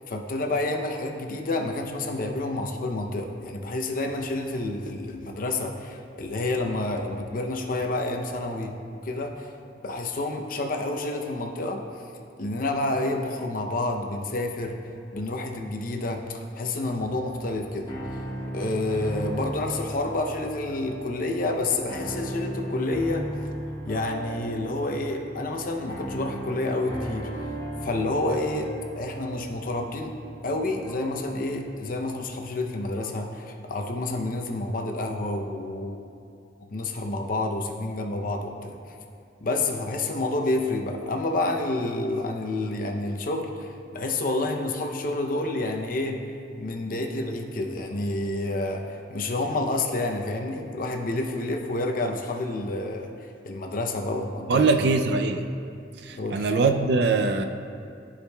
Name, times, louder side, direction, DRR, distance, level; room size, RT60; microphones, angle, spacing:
voice 1, 0.1-8.7 9.0-9.5 9.8-11.8 12.4-14.8 15.1-17.9 18.5-23.3 23.8-27.5 27.8-30.1 30.4-36.0 36.6-38.8 39.4-46.2 46.6-53.1 53.4-54.8 56.1-56.5, left 2 dB, 50° left, 3 dB, 0.6 m, -29 dB
sound 1, 17.0-33.2, right 1 dB, 25° left, 1.3 m, -37 dB
voice 2, 54.5-55.4 56.0-57.5, right 3 dB, 65° right, 6 dB, 0.4 m, -22 dB
14.0 x 4.9 x 2.3 m, 2.4 s
head